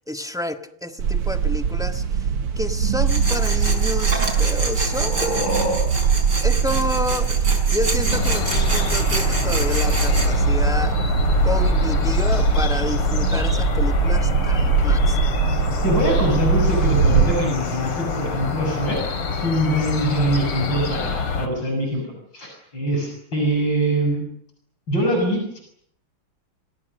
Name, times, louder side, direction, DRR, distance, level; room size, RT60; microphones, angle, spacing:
voice 1, 0.0-2.2 2.6-5.4 6.4-11.0 11.4-15.3, left 1 dB, ahead, 7 dB, 1.2 m, -29 dB
sound 1, 1.0-17.3, right 6 dB, 85° right, 2.3 m, -22 dB
Tools, 3.1-10.3, right 2 dB, 50° right, 6.0 m, -28 dB
voice 2, 4.9-5.8 15.8-19.0 19.3-22.1 22.3-24.2 24.9-25.6, right 1 dB, 55° left, 2 dB, 7.4 m, -23 dB
sound 2, 8.1-21.5, left 3 dB, 85° left, 3.6 m, -24 dB
27.0 x 26.5 x 6.6 m, 0.68 s
omnidirectional pair, 2.4 m